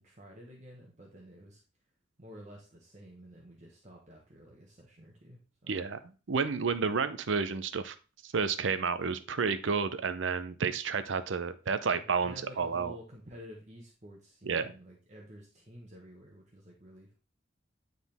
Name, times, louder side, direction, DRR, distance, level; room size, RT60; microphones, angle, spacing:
voice 1, 0.0-1.6 2.2-5.8 11.9-17.2, equal, 35° right, -1 dB, 1.2 m, -51 dB
voice 2, 5.7-6.0 6.3-7.9 8.2-12.9 14.5-14.7, right 5 dB, 75° right, 12 dB, 0.6 m, -31 dB
9.4 x 3.9 x 3.4 m, 0.34 s
head